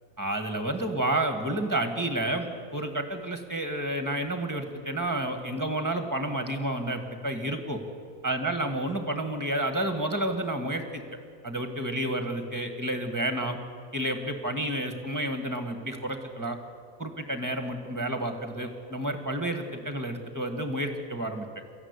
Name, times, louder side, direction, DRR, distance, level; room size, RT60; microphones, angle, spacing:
voice 1, 0.2-7.8 8.2-11.0 11.4-13.6 13.9-16.6 17.0-21.5, right 1 dB, 15° right, 6 dB, 1.8 m, -30 dB
21.5 x 15.0 x 9.8 m, 2.2 s
omnidirectional pair, 1.5 m